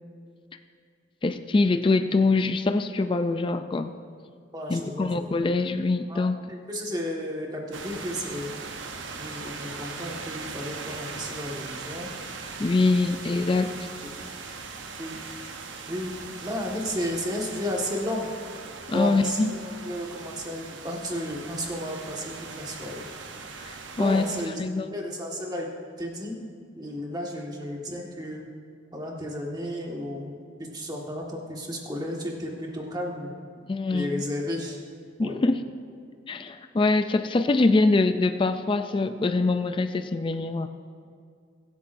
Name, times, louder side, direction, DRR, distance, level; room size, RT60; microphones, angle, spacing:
voice 1, 1.2-3.9 4.7-6.4 12.6-13.7 18.9-19.5 23.6-24.2 24.6-25.0 33.7-34.2 35.2-35.6 36.3-40.7, left 3 dB, 25° left, 9 dB, 0.3 m, -24 dB
voice 2, 4.5-5.3 6.1-8.5 9.2-12.1 13.3-13.8 15.0-15.2 15.9-16.1 16.4-18.3 18.9-23.1 23.9-24.6 24.9-25.7 26.0-26.4 26.8-28.5 28.9-33.3 33.9-34.8 35.2-35.4, equal, 20° right, -1 dB, 1.6 m, -33 dB
sound 1, 7.7-24.5, right 4 dB, 85° right, 0.9 m, -40 dB
22.5 x 8.4 x 2.6 m, 2.3 s
head